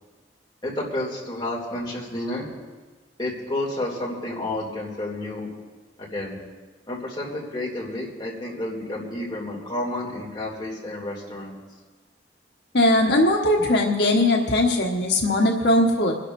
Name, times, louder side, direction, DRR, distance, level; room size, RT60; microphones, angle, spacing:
voice 1, 0.6-2.5 3.2-5.5 6.0-6.4 6.9-11.6, left 1 dB, 25° left, -4 dB, 2.7 m, -30 dB
voice 2, 12.7-16.1, left 1 dB, 75° left, 0 dB, 1.3 m, -20 dB
27.0 x 11.5 x 2.6 m, 1.4 s
head